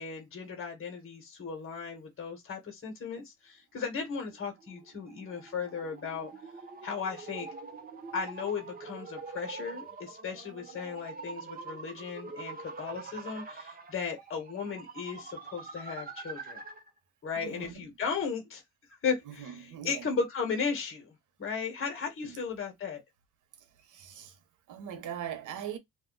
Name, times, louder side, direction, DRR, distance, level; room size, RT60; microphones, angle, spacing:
voice 1, 0.0-6.3 6.8-7.5 8.1-16.6 17.2-18.6 19.0-21.1 21.4-23.0, left 5 dB, 45° left, 1.4 m, -36 dB
sound 1, 4.2-16.9, right 4 dB, 30° right, 0.8 m, -45 dB
voice 2, 17.3-17.9 19.2-20.2 22.2-22.4 23.9-24.3 24.7-25.8, right 9 dB, 80° right, 1.0 m, -41 dB
2.6 x 2.4 x 3.9 m
cardioid pair, 90°, 30 cm